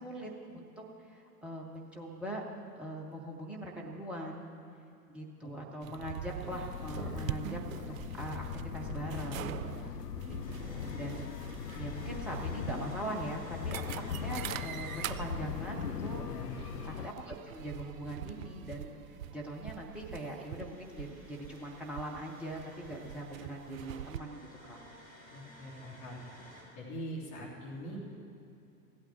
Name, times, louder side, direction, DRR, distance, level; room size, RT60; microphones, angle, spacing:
voice 1, 0.0-2.4 2.7-4.5 5.1-9.6 10.3-11.3 11.8-16.2 16.8-24.8, right 1 dB, 5° right, -2 dB, 0.3 m, -42 dB
sound 1, 5.8-24.2, right 11 dB, 60° right, 0.5 m, -44 dB
sound 2, 6.5-17.1, left 8 dB, 85° left, 0.5 m, -40 dB
sound 3, 10.4-26.6, left 1 dB, 20° left, 3.8 m, -56 dB
voice 2, 16.3-16.7 25.3-26.2 26.7-28.0, equal, 40° left, -3 dB, 3.2 m, -43 dB
15.5 x 8.9 x 7.3 m, 2.7 s
figure-of-eight pair, 95°, 46 cm